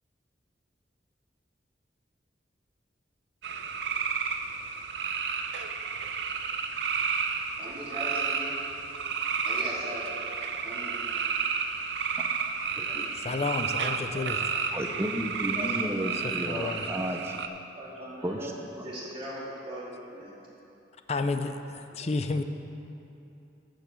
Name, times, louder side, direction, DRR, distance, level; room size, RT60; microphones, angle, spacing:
sound 1, 3.4-17.5, right 5 dB, 70° right, 0.6 m, -31 dB
voice 1, 7.6-8.5 9.4-10.0 10.6-10.9 12.9-13.5 14.1-14.4 15.6-16.6 17.7-20.3 22.0-22.1, equal, 30° right, -7 dB, 2.9 m, -40 dB
voice 2, 12.9-14.4 16.5-16.9 21.1-21.5 22.0-22.4, left 3 dB, 35° left, 8 dB, 0.5 m, -30 dB
voice 3, 14.7-17.4 18.2-18.7 22.4-22.5, equal, 15° right, 2 dB, 0.5 m, -33 dB
13.5 x 5.2 x 6.9 m, 2.7 s
head